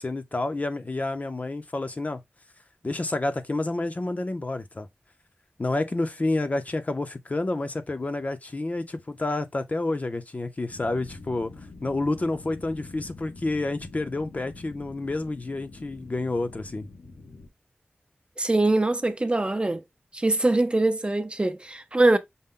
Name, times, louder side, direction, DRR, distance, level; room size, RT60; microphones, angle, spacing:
voice 1, 0.0-2.2 2.8-4.9 5.6-11.5 11.8-16.9, left 2 dB, 40° left, 0.6 m, -29 dB
sound 1, 10.7-17.5, left 3 dB, 80° left, 0.9 m, -45 dB
voice 2, 18.4-19.8 20.1-22.2, right 2 dB, 30° right, 0.5 m, -23 dB
5.5 x 2.2 x 3.6 m
wide cardioid pair, 90°, 4 cm